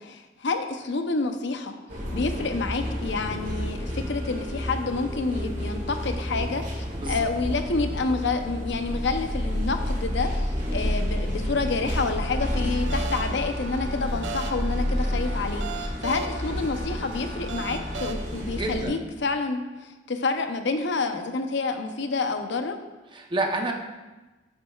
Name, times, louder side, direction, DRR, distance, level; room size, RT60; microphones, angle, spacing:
voice 1, 0.0-1.7 2.1-22.8, left 3 dB, 70° left, 7 dB, 0.7 m, -28 dB
sound 1, 1.9-18.9, equal, 45° right, 2.0 m, -30 dB
voice 2, 6.9-7.3 18.5-19.0 23.1-23.7, right 2 dB, 25° right, 2 dB, 0.8 m, -29 dB
sound 2, 12.2-18.1, right 2 dB, 70° right, 0.6 m, -38 dB
10.5 x 7.5 x 2.4 m, 1.2 s
head